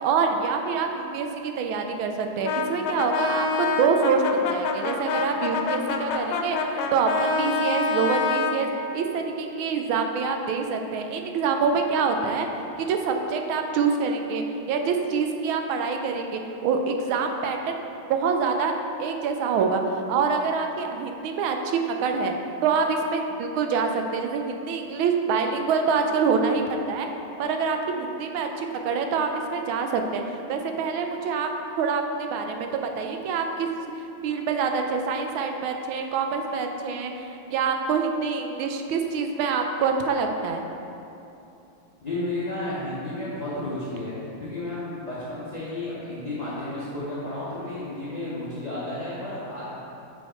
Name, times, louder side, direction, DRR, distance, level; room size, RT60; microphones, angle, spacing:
voice 1, 0.0-12.5 12.8-17.8 18.1-22.3 22.6-27.1 27.4-30.2 30.5-31.5 31.8-33.7 34.2-40.6, right 5 dB, 85° right, 4 dB, 1.4 m, -26 dB
Brass instrument, 2.4-8.6, left 4 dB, 80° left, 1.4 m, -26 dB
voice 2, 42.0-49.6, left 1 dB, 40° left, -10 dB, 0.5 m, -32 dB
5.9 x 4.7 x 4.3 m, 2.8 s
omnidirectional pair, 2.2 m